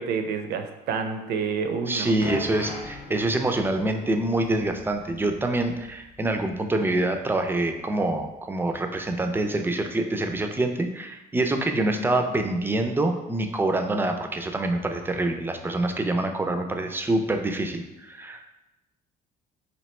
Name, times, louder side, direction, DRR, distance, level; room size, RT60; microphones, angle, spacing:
voice 1, 0.0-2.1, right 5 dB, 75° right, 6 dB, 0.5 m, -28 dB
sound 1, 1.6-6.5 6.7-6.9 7.7-7.8, left 2 dB, 80° left, 0.9 m, -41 dB
voice 2, 1.9-18.5, right 2 dB, 10° right, 5 dB, 0.4 m, -26 dB
3.1 x 2.7 x 4.2 m, 0.97 s
cardioid pair, 110°, 17 cm